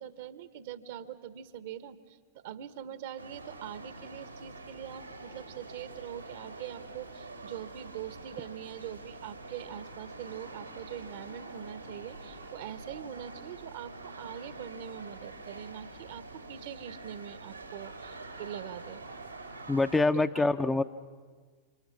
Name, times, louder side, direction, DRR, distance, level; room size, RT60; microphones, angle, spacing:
voice 1, 0.0-19.0 20.1-20.5, right 10 dB, 55° right, 14 dB, 1.1 m, -43 dB
sound 1, 3.2-20.0, right 3 dB, 85° right, 2.6 m, -46 dB
voice 2, 19.7-20.8, left 2 dB, 10° left, 9 dB, 0.6 m, -25 dB
29.0 x 26.0 x 5.9 m, 1.5 s
figure-of-eight pair, 90°, 0 cm